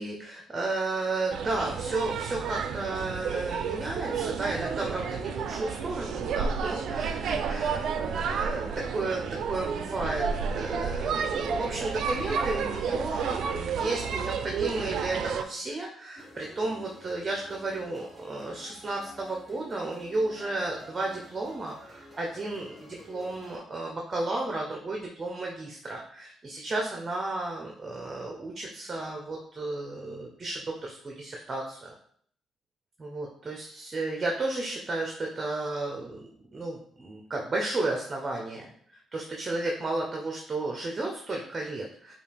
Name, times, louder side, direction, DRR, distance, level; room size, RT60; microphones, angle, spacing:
voice 1, 0.0-31.9 33.0-42.1, right 2 dB, 30° right, 0 dB, 0.8 m, -33 dB
sound 1, 1.3-15.4, right 6 dB, 70° right, 0.4 m, -31 dB
sound 2, 16.2-23.6, equal, 5° left, 1.1 m, -50 dB
5.2 x 2.4 x 3.4 m, 0.62 s
cardioid pair, 90°, 0 cm